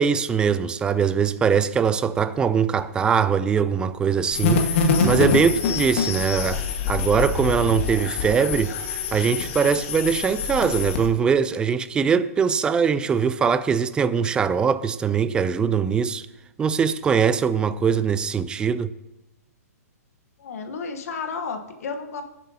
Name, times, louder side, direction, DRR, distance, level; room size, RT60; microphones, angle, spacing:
voice 1, 0.0-8.7 9.1-16.3 16.6-18.9, right 6 dB, 10° right, 0.4 m, -22 dB
sound 1, 4.3-11.1, left 4 dB, 50° left, 1.5 m, -25 dB
voice 2, 20.4-22.2, left 5 dB, 65° left, 1.1 m, -32 dB
16.0 x 7.4 x 2.8 m
hypercardioid pair, 145°, 9 cm